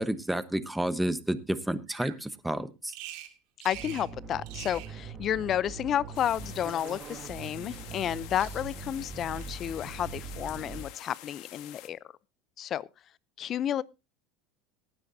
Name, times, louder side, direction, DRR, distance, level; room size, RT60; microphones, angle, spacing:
voice 1, 0.0-2.9, right 1 dB, 5° right, 1.0 m, -30 dB
Bird vocalization bird call bird song, 1.9-2.2 2.9-3.3 3.6-4.1 4.4-4.9 5.9-6.9 7.7-8.1 8.4-8.9 9.4-9.7, right 14 dB, 70° right, 2.3 m, -46 dB
voice 2, 3.6-12.0 12.6-12.9 13.4-13.8, left 10 dB, 40° left, 0.5 m, -31 dB
sound 1, 3.7-10.8, right 5 dB, 40° right, 1.5 m, -42 dB
sound 2, 6.1-11.9, left 14 dB, 65° left, 1.4 m, -48 dB
18.5 x 9.7 x 2.7 m
supercardioid pair, 100°, 0 cm